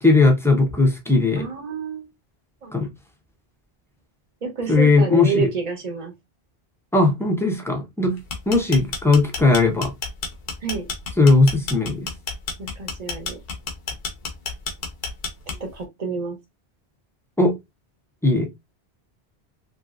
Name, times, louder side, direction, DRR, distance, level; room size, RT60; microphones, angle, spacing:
voice 1, 0.0-1.5 2.7-2.9 4.7-5.5 6.9-8.2 8.5-9.9 11.2-12.1 17.4-17.5 18.2-18.5, left 3 dB, 5° left, 0.5 m, -18 dB
voice 2, 1.4-2.1 2.6-2.7 4.4-6.1 10.6-10.9 12.6-13.4 15.5-16.4, right 5 dB, 40° right, 0.9 m, -29 dB
sound 1, 8.2-15.8, left 4 dB, 65° left, 0.9 m, -30 dB
3.0 x 2.8 x 2.4 m
omnidirectional pair, 1.1 m